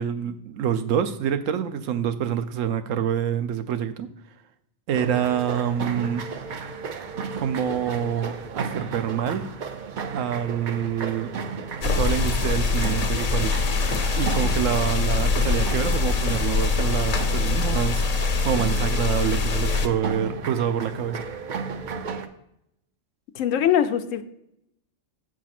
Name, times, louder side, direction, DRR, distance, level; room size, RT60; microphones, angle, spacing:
voice 1, 0.0-4.1 4.9-6.2 7.4-9.5 10.1-11.3 11.8-13.6 14.1-21.2, right 9 dB, 80° right, 10 dB, 1.0 m, -26 dB
sound 1, 4.9-22.3, right 5 dB, 55° right, 0.5 m, -34 dB
sound 2, 11.8-19.9, left 4 dB, 45° left, 0.5 m, -23 dB
voice 2, 23.4-24.2, left 9 dB, 85° left, 10 dB, 1.0 m, -22 dB
7.1 x 4.6 x 5.9 m, 0.80 s
omnidirectional pair, 1.3 m